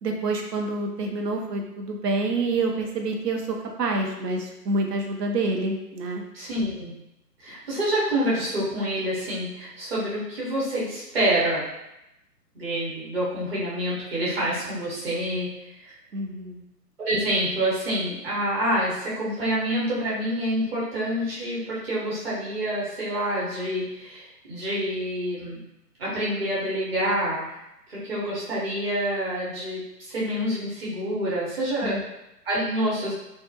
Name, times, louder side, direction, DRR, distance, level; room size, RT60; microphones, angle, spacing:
voice 1, 0.0-6.2 16.1-16.6 31.8-32.0, right 2 dB, 75° right, 2 dB, 0.6 m, -27 dB
voice 2, 6.3-6.9 7.4-11.6 12.5-15.5 15.8-15.9 17.0-25.6 26.0-27.6 27.9-32.0 32.4-33.1, equal, 40° right, -7 dB, 0.9 m, -27 dB
2.3 x 2.0 x 2.7 m, 0.89 s
figure-of-eight pair, 135°, 49 cm